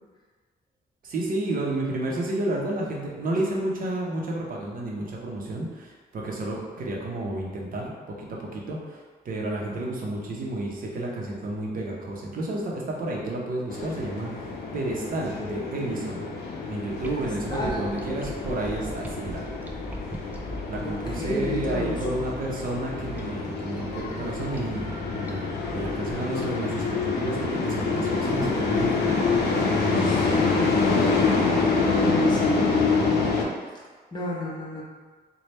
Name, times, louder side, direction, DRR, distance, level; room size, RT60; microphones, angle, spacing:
voice 1, 1.0-14.5 14.7-16.3 16.7-19.5 20.7-29.3, right 1 dB, 60° right, -2 dB, 0.8 m, -31 dB
sound 1, 13.7-33.4, left 4 dB, 75° left, 0.6 m, -26 dB
sound 2, 17.0-30.1, equal, 10° right, 0.3 m, -40 dB
voice 2, 17.5-17.9 20.8-22.1 30.0-30.3 30.9-31.5 32.0-33.3 33.7-33.8 34.1-34.8, left 1 dB, 25° left, -4 dB, 0.8 m, -32 dB
3.3 x 2.2 x 4.1 m, 1.4 s
wide cardioid pair, 140°, 17 cm